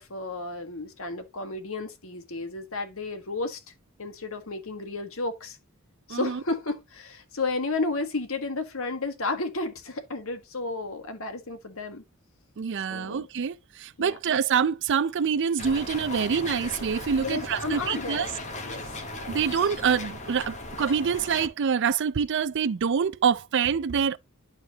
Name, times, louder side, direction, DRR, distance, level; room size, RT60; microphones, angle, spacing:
voice 1, 0.0-3.6 4.0-5.6 6.1-12.0 12.9-13.3 14.0-14.2 17.2-18.3 18.7-18.8, left 3 dB, 70° left, 1.7 m, -32 dB
voice 2, 6.1-6.4 12.6-18.3 19.3-24.2, right 6 dB, 55° right, 0.5 m, -26 dB
sound 1, 15.6-21.5, left 2 dB, 35° left, 1.7 m, -37 dB
12.0 x 4.5 x 2.9 m
head